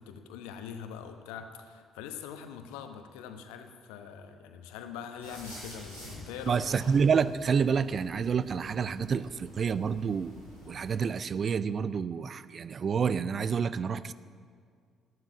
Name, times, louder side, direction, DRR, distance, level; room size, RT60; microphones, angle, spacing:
voice 1, 0.0-6.6, left 7 dB, 65° left, 7 dB, 1.0 m, -43 dB
sound 1, 5.2-10.9, left 1 dB, 90° right, 4.4 m, -49 dB
voice 2, 6.5-10.4 10.7-14.1, right 6 dB, 40° right, 16 dB, 0.5 m, -28 dB
12.5 x 9.7 x 8.9 m, 2.1 s
figure-of-eight pair, 45°, 0 cm